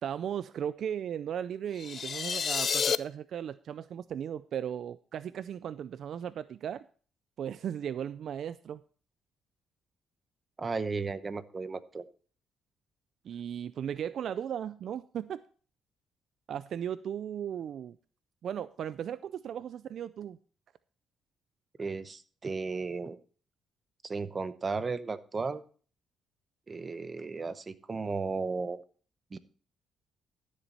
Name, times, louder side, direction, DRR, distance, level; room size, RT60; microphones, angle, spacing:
voice 1, 0.0-6.9 7.4-8.8 13.2-15.4 16.5-18.0 18.4-20.4, right 9 dB, 65° right, 0.4 m, -36 dB
sound 1, 1.8-3.0, left 6 dB, 50° left, 0.4 m, -29 dB
voice 2, 10.6-12.0 21.8-23.2 24.0-25.6 26.7-28.8 29.3-29.4, right 4 dB, 35° right, 0.9 m, -34 dB
13.5 x 7.4 x 4.1 m
cardioid pair, 90°, 0 cm